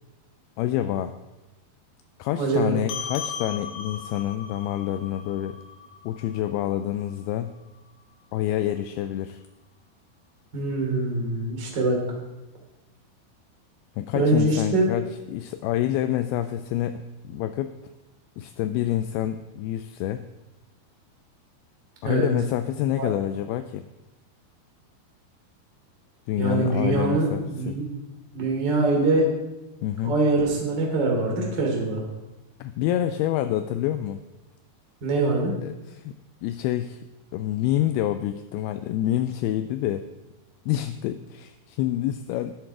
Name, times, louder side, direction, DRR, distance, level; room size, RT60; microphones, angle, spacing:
voice 1, 0.6-1.2 2.2-5.6 6.1-7.6 8.3-9.4 14.0-17.8 18.4-20.3 22.0-23.9 26.3-27.8 29.8-30.2 32.6-34.2 35.6-36.1 36.4-37.0 37.3-40.1 40.7-42.5, left 12 dB, 85° left, 9 dB, 2.4 m, -27 dB
voice 2, 2.4-2.8 10.5-12.0 14.1-14.8 22.0-22.3 23.0-23.1 26.4-27.8 28.3-29.3 30.0-32.0 35.0-35.5, right 2 dB, 30° right, -1 dB, 3.0 m, -23 dB
sound 1, 2.9-7.7, left 6 dB, 65° left, 2.2 m, -38 dB
13.5 x 11.5 x 4.8 m, 1.0 s
omnidirectional pair, 4.7 m